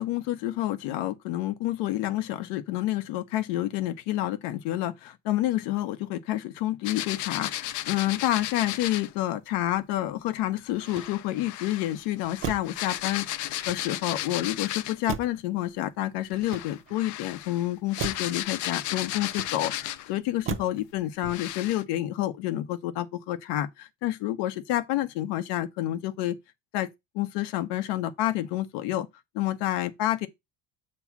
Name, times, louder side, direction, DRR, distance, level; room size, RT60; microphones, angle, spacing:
voice 1, 0.0-26.3 26.7-26.9 27.1-29.1 29.3-30.3, left 14 dB, 80° left, 1.0 m, -29 dB
sound 1, 6.8-9.1 10.8-15.1 16.3-20.2 20.8-20.9 21.3-21.8, left 14 dB, 45° left, 0.5 m, -34 dB
Motor vehicle (road), 10.8-11.6 12.4-12.9 13.5-14.2 15.1-15.5 16.3-17.1 18.0-18.4 19.3-19.9 20.5-20.9 21.2-21.7, right 8 dB, 30° right, 0.7 m, -37 dB
7.2 x 3.2 x 5.9 m
cardioid pair, 165°, 41 cm